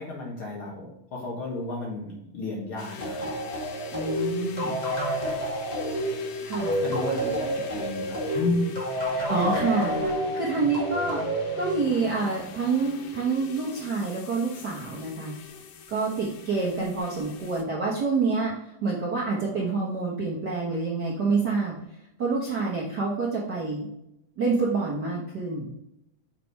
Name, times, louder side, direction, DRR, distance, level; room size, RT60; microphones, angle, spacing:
voice 1, 0.0-3.3 5.9-6.2 6.8-8.7, left 2 dB, 55° left, -3 dB, 1.7 m, -33 dB
sound 1, 2.8-17.6, left 6 dB, 80° left, 2.4 m, -44 dB
sound 2, 3.0-12.2, equal, 20° left, 1.4 m, -29 dB
voice 2, 3.9-4.7 6.4-6.8 9.3-11.2 11.5-15.3 15.9-18.5 18.8-21.7 22.2-23.9 24.4-25.7, right 4 dB, 50° right, -6 dB, 1.2 m, -27 dB
6.8 x 4.9 x 4.8 m, 0.81 s
omnidirectional pair, 3.7 m